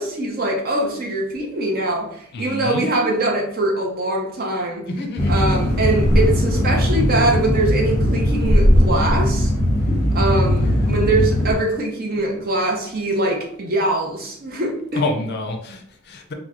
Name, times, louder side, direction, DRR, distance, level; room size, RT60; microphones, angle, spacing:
voice 1, 0.0-4.9 5.3-9.5 10.1-15.0, right 2 dB, 45° right, 0 dB, 0.7 m, -22 dB
voice 2, 2.3-2.8 4.9-5.4 9.9-10.2 15.0-16.3, left 2 dB, 50° left, 4 dB, 0.5 m, -28 dB
sound 1, 5.2-11.5, equal, 15° left, 0.8 m, -18 dB
3.0 x 2.2 x 3.6 m, 0.66 s
head